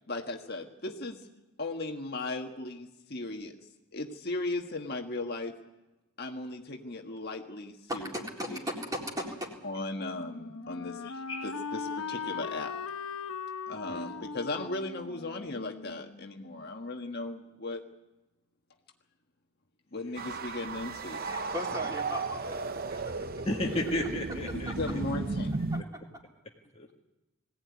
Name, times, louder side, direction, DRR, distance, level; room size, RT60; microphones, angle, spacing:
voice 1, 0.1-1.3 1.6-3.6 3.9-5.6 6.2-8.1 8.5-8.6 9.6-12.7 13.7-17.8 19.9-21.2 24.5-25.6, left 2 dB, 45° left, 3 dB, 1.6 m, -37 dB
voice 2, 7.9-9.5 21.3-23.4 24.7-24.8 25.7-26.0, equal, 15° right, 0 dB, 4.0 m, -38 dB
Wind instrument woodwind instrument, 9.7-16.6, left 5 dB, 75° left, 1.0 m, -40 dB
sound 1, 20.2-25.8, right 3 dB, 45° right, 0.8 m, -35 dB
voice 3, 23.5-24.7 25.6-25.8 26.7-26.9, left 1 dB, 25° left, 0 dB, 1.8 m, -33 dB
21.5 x 17.0 x 9.7 m, 1.0 s
head